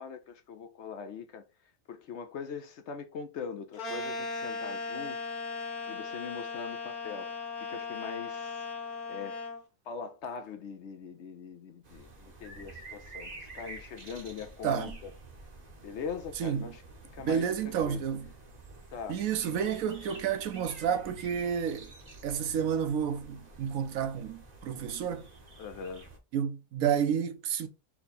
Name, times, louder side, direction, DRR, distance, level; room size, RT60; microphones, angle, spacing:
voice 1, 0.0-1.5 1.9-5.4 5.9-8.7 9.1-9.4 9.9-15.1 15.8-16.8 17.1-18.0 18.9-19.2 25.6-26.1, left 6 dB, 65° left, 0.8 m, -42 dB
sound 1, 3.8-9.6, left 4 dB, 85° left, 1.5 m, -37 dB
sound 2, 11.8-26.2, right 3 dB, 35° right, 0.8 m, -49 dB
voice 2, 14.6-14.9 16.4-16.7 17.2-18.3 19.1-21.9 22.2-25.3 26.3-27.7, right 8 dB, 75° right, 1.0 m, -30 dB
4.5 x 2.7 x 3.9 m
omnidirectional pair, 1.5 m